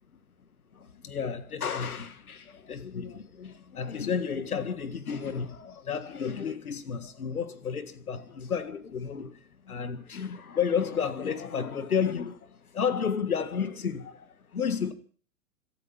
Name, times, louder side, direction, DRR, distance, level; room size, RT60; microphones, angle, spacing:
voice 1, 0.7-14.9, left 7 dB, 75° left, 1.9 m, -32 dB
26.0 x 9.0 x 5.7 m
figure-of-eight pair, 105°, 44 cm